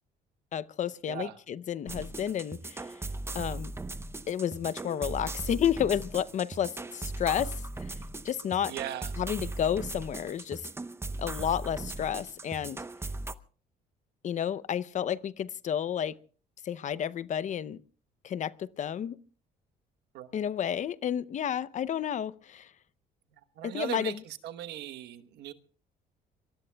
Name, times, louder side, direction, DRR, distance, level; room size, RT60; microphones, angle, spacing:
voice 1, 0.5-3.0 3.3-3.7 4.3-7.9 8.2-8.7 9.2-10.6 11.2-12.8 14.2-16.1 16.6-17.8 18.2-19.2 20.3-22.7 23.6-24.2, left 9 dB, 45° left, 0.7 m, -31 dB
sound 1, 1.9-13.3, right 2 dB, 15° right, 0.7 m, -38 dB
voice 2, 8.7-9.1 20.1-20.5 23.4-25.5, right 12 dB, 80° right, 1.2 m, -39 dB
26.0 x 23.0 x 2.3 m
cardioid pair, 110°, 17 cm